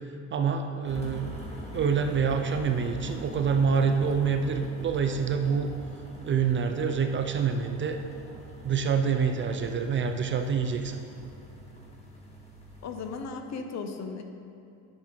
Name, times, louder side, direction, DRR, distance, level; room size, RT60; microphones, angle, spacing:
voice 1, 0.3-1.4 1.7-5.7 6.2-8.0 8.6-11.0, right 6 dB, 30° right, 6 dB, 0.5 m, -26 dB
sound 1, 0.8-13.2, equal, 15° left, 1.9 m, -43 dB
voice 2, 12.8-14.2, left 4 dB, 45° left, 6 dB, 0.9 m, -36 dB
10.5 x 6.2 x 4.0 m, 2.6 s
supercardioid pair, 95°, 37 cm